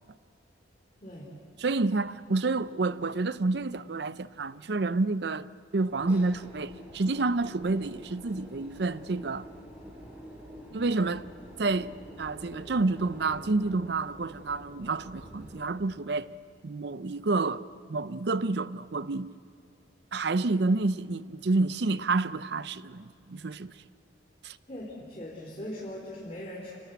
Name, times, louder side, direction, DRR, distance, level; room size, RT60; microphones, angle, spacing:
voice 1, 1.6-5.5 5.7-9.5 10.7-11.3 11.6-11.9 12.2-16.3 16.6-17.6 17.9-19.3 20.1-23.7 24.4-24.6, right 3 dB, 60° right, 0.6 m, -29 dB
sound 1, 5.9-15.7, equal, 10° right, 4.8 m, -47 dB
voice 2, 24.7-26.8, left 1 dB, 35° left, 3.5 m, -40 dB
28.0 x 19.0 x 8.2 m
head